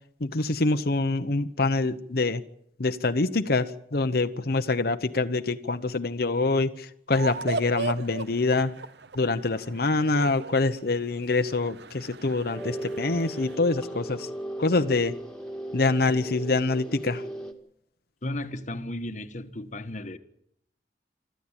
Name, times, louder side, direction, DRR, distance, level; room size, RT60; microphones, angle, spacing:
voice 1, 0.2-2.4 2.8-8.7 9.2-14.3 14.6-15.1 15.7-17.2, left 3 dB, 60° left, 0.9 m, -25 dB
sound 1, 7.1-13.6, right 3 dB, 70° right, 0.9 m, -37 dB
sound 2, 12.5-17.5, right 1 dB, 5° left, 2.0 m, -37 dB
voice 2, 18.2-20.2, left 1 dB, 45° left, 1.4 m, -34 dB
25.0 x 14.0 x 8.9 m
head